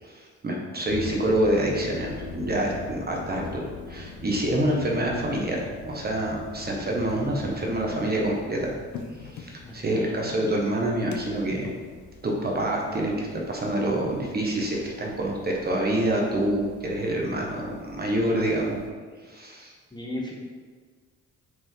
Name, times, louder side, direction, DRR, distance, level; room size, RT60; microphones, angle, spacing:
voice 1, 0.0-8.7 9.2-11.7 12.2-18.8 19.2-19.7, right 1 dB, 30° right, -1 dB, 1.3 m, -27 dB
sound 1, 0.9-18.9, left 4 dB, 75° left, 0.8 m, -42 dB
voice 2, 9.6-10.2 19.9-20.4, left 1 dB, 15° left, -3 dB, 1.2 m, -36 dB
6.0 x 4.8 x 3.8 m, 1.5 s
cardioid pair, 90°, 30 cm